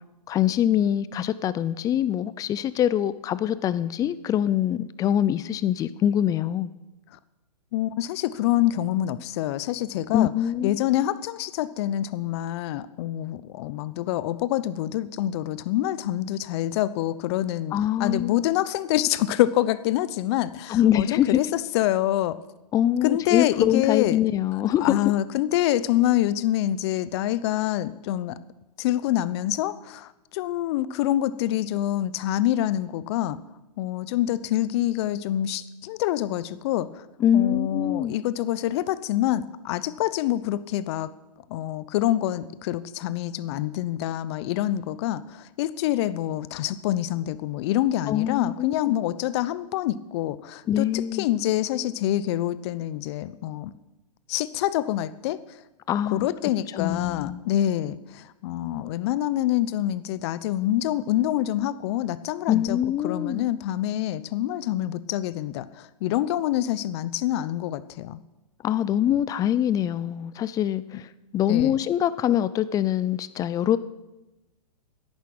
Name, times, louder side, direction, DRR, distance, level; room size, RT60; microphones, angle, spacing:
voice 1, 0.3-6.7 10.1-10.8 17.7-18.4 20.7-21.4 22.7-25.0 37.2-38.2 48.1-48.8 50.7-51.3 55.9-56.3 56.7-57.4 62.5-63.4 68.6-71.1 71.3-73.8, left 11 dB, 15° left, 16 dB, 0.5 m, -24 dB
voice 2, 7.7-10.3 10.6-22.4 23.0-24.2 24.8-28.4 28.8-33.4 33.8-37.0 37.3-41.1 41.5-53.7 54.3-55.4 56.1-62.8 63.0-68.2 70.9-71.0 71.5-71.8, left 13 dB, 40° left, 16 dB, 0.8 m, -26 dB
11.0 x 10.5 x 8.8 m, 1.0 s
hypercardioid pair, 130°, 20 cm